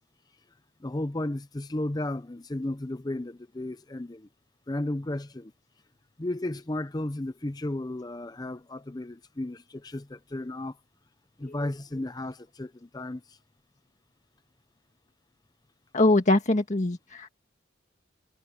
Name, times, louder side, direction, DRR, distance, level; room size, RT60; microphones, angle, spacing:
voice 1, 0.8-4.3 4.7-5.5 6.2-10.8 11.4-13.4, left 1 dB, 20° left, 0.6 m, -34 dB
voice 2, 11.4-11.7 15.9-17.3, left 2 dB, 40° left, 1.7 m, -23 dB
head